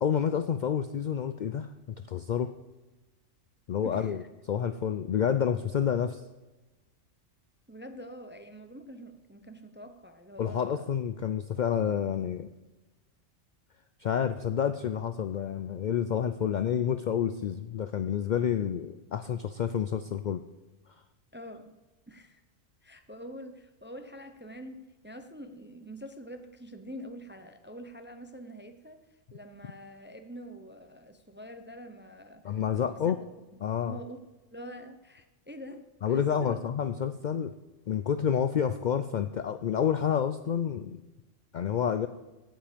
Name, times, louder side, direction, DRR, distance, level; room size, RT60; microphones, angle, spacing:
voice 1, 0.0-2.5 3.7-6.2 10.4-12.5 14.0-20.4 32.4-33.2 33.6-34.0 36.0-37.5 37.9-41.0 41.5-42.1, left 8 dB, 80° left, 10 dB, 0.4 m, -29 dB
voice 2, 3.8-4.3 7.7-10.9 21.3-21.8 22.1-22.4 22.8-29.0 29.3-33.1 33.8-34.2 34.5-36.6, equal, 15° right, 7 dB, 0.4 m, -45 dB
16.0 x 5.5 x 5.1 m, 1.1 s
omnidirectional pair, 1.3 m